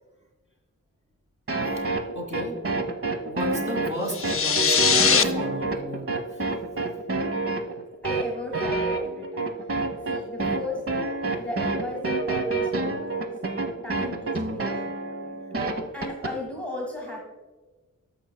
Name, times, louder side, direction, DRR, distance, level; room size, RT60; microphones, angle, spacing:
sound 1, 1.5-16.3, right 3 dB, 45° right, 0.9 m, -28 dB
voice 1, 2.1-2.6 3.3-6.4 11.2-11.3, equal, 20° right, 0 dB, 2.3 m, -34 dB
sound 2, 4.1-5.2, left 6 dB, 45° left, 0.5 m, -20 dB
voice 2, 7.6-10.8 11.4-13.4 13.8-15.4 15.9-17.2, left 2 dB, 5° left, -1 dB, 1.7 m, -37 dB
14.0 x 5.7 x 2.2 m, 1.3 s
wide cardioid pair, 95°, 32 cm